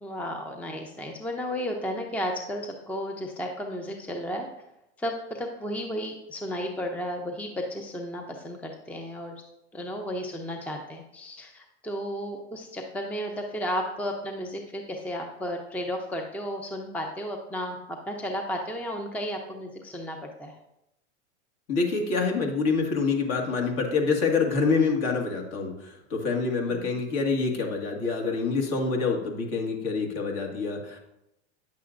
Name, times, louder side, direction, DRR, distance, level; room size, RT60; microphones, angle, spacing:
voice 1, 0.0-4.5 5.0-9.3 9.7-20.6 26.7-26.9, equal, 5° left, 3 dB, 0.6 m, -33 dB
voice 2, 21.7-31.0, left 4 dB, 45° left, 2 dB, 1.9 m, -26 dB
9.3 x 6.9 x 2.5 m, 0.87 s
hypercardioid pair, 110°, 35 cm